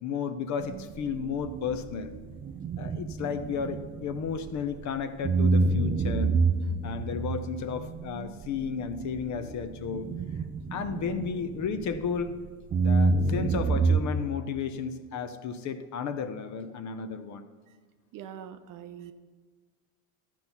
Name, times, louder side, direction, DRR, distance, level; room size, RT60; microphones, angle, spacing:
voice 1, 0.0-2.1 2.8-6.3 6.8-10.1 10.7-12.4 12.8-17.5, left 6 dB, 40° left, 10 dB, 0.8 m, -33 dB
sound 1, 0.6-4.8 5.2-12.3 12.7-14.0, right 4 dB, 20° right, 0.4 m, -28 dB
voice 2, 18.1-19.1, right 9 dB, 45° right, 9 dB, 0.8 m, -44 dB
13.0 x 4.6 x 5.6 m, 1.5 s
hypercardioid pair, 80°, 45 cm